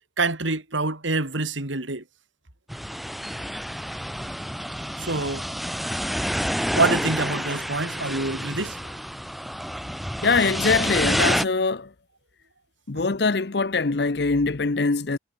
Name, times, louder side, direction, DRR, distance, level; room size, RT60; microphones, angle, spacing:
voice 1, 0.2-2.0 5.0-5.4 6.8-9.0, right 3 dB, 90° right, 3.7 m, -26 dB
sound 1, 2.7-11.4, equal, ahead, 1.0 m, -28 dB
voice 2, 10.2-11.9 12.9-15.2, left 4 dB, 60° left, 0.8 m, -23 dB
head